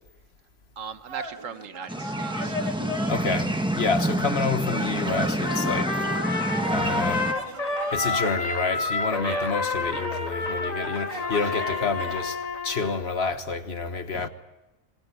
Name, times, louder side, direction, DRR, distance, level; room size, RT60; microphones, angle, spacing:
voice 1, 0.8-2.6 9.2-9.5 14.1-14.3, right 7 dB, 90° right, 1.5 m, -38 dB
sound 1, 1.1-3.5 4.1-4.2 4.7-12.3, right 1 dB, 25° right, 2.6 m, -37 dB
sound 2, 1.9-7.3, right 1 dB, 5° right, 1.3 m, -27 dB
voice 2, 3.1-6.1 6.7-7.3 7.9-14.3, left 4 dB, 55° left, 1.6 m, -29 dB
Trumpet, 5.4-13.0, left 3 dB, 30° left, 1.8 m, -29 dB
26.0 x 21.0 x 8.2 m
omnidirectional pair, 1.3 m